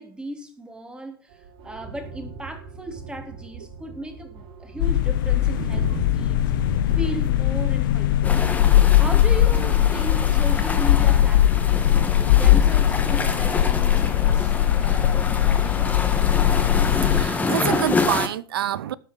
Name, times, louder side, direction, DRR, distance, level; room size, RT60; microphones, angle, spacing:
voice 1, 0.0-6.6 7.0-8.5 9.0-11.9 12.3-14.6 14.8-16.0, right 1 dB, 5° right, 3.3 m, -36 dB
sound 1, 1.3-7.3, right 4 dB, 40° right, 3.6 m, -37 dB
sound 2, 4.8-17.3, left 12 dB, 60° left, 0.9 m, -20 dB
sound 3, 8.2-18.3, left 3 dB, 10° left, 2.1 m, -28 dB
voice 2, 17.0-18.9, right 11 dB, 70° right, 0.8 m, -27 dB
13.0 x 9.2 x 5.5 m
hypercardioid pair, 105°, 13 cm